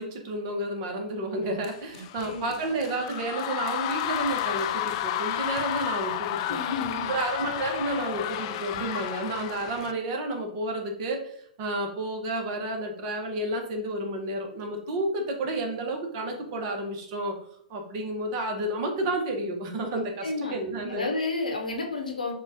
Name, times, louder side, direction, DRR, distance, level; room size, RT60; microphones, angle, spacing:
voice 1, 0.0-6.6 7.1-17.3 17.7-21.1, right 1 dB, 45° right, 2 dB, 1.1 m, -31 dB
sound 1, 1.6-9.9, left 12 dB, 45° left, 0.3 m, -32 dB
voice 2, 1.9-2.5 6.5-7.1 20.2-20.5 20.9-22.3, left 3 dB, 85° left, 1 dB, 1.1 m, -31 dB
5.0 x 2.4 x 3.5 m, 0.67 s
figure-of-eight pair, 110°, 4 cm